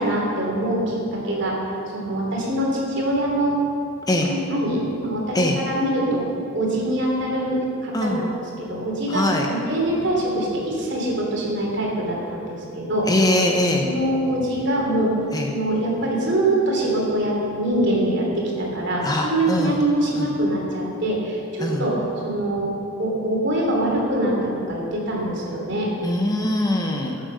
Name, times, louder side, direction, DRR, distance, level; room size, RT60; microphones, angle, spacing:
voice 1, 0.0-1.6 1.9-3.6 4.2-6.3 6.5-13.1 13.8-15.1 15.5-22.7 23.0-25.9, right 1 dB, 55° right, -2 dB, 3.2 m, -24 dB
voice 2, 9.1-9.5 13.1-13.9 15.3-15.5 19.0-19.8 20.2-20.3 21.6-21.8 26.0-27.2, left 1 dB, 20° left, 1 dB, 0.9 m, -22 dB
15.0 x 7.7 x 6.8 m, 2.6 s
head